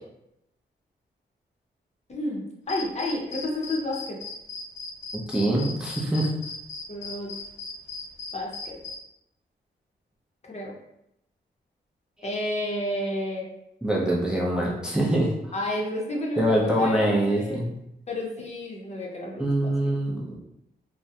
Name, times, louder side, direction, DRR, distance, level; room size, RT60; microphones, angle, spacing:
voice 1, 2.1-4.2 6.9-7.3 8.3-8.8 10.5-10.7 12.2-13.5 15.5-17.6 18.1-19.5, left 1 dB, 35° left, -2 dB, 0.7 m, -30 dB
sound 1, 2.7-9.0, left 4 dB, 85° left, 0.4 m, -37 dB
voice 2, 5.1-6.3 13.8-15.5 16.4-17.7 19.4-20.4, right 1 dB, 5° right, -4 dB, 0.5 m, -24 dB
2.2 x 2.0 x 2.7 m, 0.82 s
cardioid pair, 65°, 19 cm